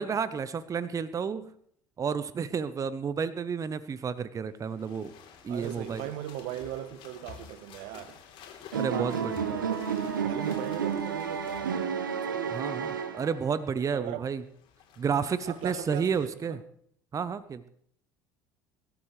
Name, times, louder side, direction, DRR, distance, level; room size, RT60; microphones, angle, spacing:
voice 1, 0.0-1.5 2.0-5.1 5.4-6.0 8.7-9.4 12.5-14.4 15.0-16.6 17.1-17.7, right 6 dB, 30° right, 0.8 m, -31 dB
sound 1, 4.5-12.1 14.3-16.3, left 7 dB, 60° left, 3.4 m, -51 dB
voice 2, 5.5-8.2 8.7-9.9 10.2-11.8 12.3-12.7 13.9-14.3 15.0-16.6, right 12 dB, 65° right, 1.1 m, -39 dB
sound 2, 8.7-13.6, right 7 dB, 90° right, 1.0 m, -31 dB
23.5 x 13.0 x 3.2 m
hypercardioid pair, 65°, 10 cm